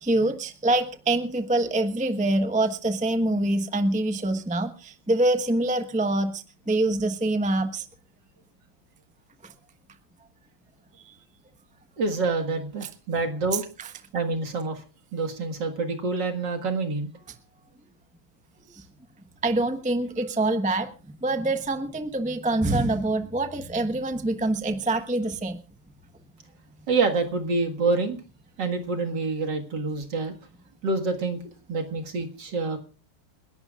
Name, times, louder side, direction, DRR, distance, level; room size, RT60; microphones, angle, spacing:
voice 1, 0.0-7.8 9.4-9.5 11.0-11.1 13.8-13.9 18.7-18.8 19.4-20.9 21.2-25.6, right 2 dB, 10° right, 8 dB, 0.3 m, -25 dB
voice 2, 12.0-13.6 14.1-14.8 15.1-17.1 26.9-28.2 28.6-30.3 30.8-31.4 31.7-32.8, right 3 dB, 55° right, 4 dB, 2.3 m, -27 dB
29.0 x 11.5 x 2.4 m, 0.33 s
omnidirectional pair, 2.4 m